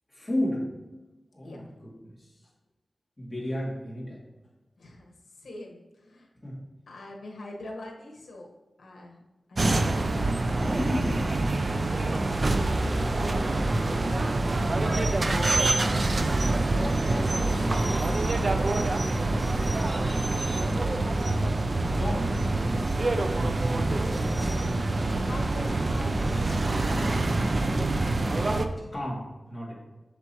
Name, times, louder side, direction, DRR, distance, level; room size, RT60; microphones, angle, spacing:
voice 1, 0.1-0.7 1.3-2.3 3.2-4.2 6.4-6.6 10.7-11.2 20.6-23.0 28.8-29.8, left 1 dB, 15° left, -5 dB, 2.7 m, -34 dB
voice 2, 4.8-6.3 6.9-8.5 8.8-9.2 9.5-10.3 12.9-14.2 15.4-15.9 16.7-18.5 24.1-27.5, left 1 dB, 80° left, 0 dB, 1.4 m, -42 dB
sound 1, 9.6-28.7, right 2 dB, 40° right, 0.5 m, -26 dB
8.0 x 6.7 x 3.1 m, 1.1 s
wide cardioid pair, 95°, 0 cm